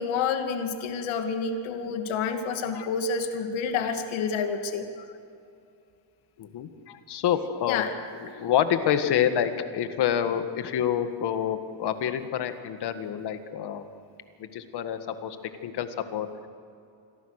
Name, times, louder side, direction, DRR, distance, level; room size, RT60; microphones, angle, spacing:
voice 1, 0.0-4.9 7.7-7.9, left 5 dB, 75° left, 6 dB, 2.3 m, -29 dB
voice 2, 6.4-7.8 8.4-13.8 14.4-15.4 15.6-16.5, left 9 dB, 55° left, 9 dB, 1.8 m, -27 dB
28.0 x 22.5 x 6.6 m, 2.5 s
cardioid pair, 150°, 48 cm